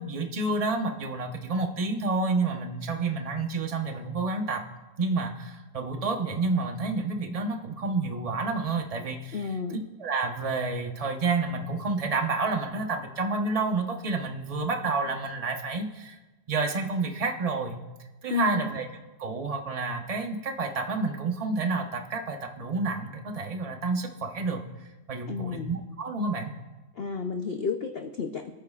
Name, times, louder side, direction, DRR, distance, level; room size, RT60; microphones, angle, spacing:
voice 1, 0.0-4.6 5.0-9.4 10.0-16.2 16.5-17.8 18.2-18.8 19.2-24.6 25.1-26.5, right 3 dB, 25° right, 3 dB, 0.9 m, -29 dB
voice 2, 9.3-9.8 18.3-18.6 25.3-25.7 26.9-28.5, left 6 dB, 50° left, 5 dB, 0.8 m, -31 dB
26.0 x 9.4 x 2.4 m, 1.2 s
omnidirectional pair, 1.7 m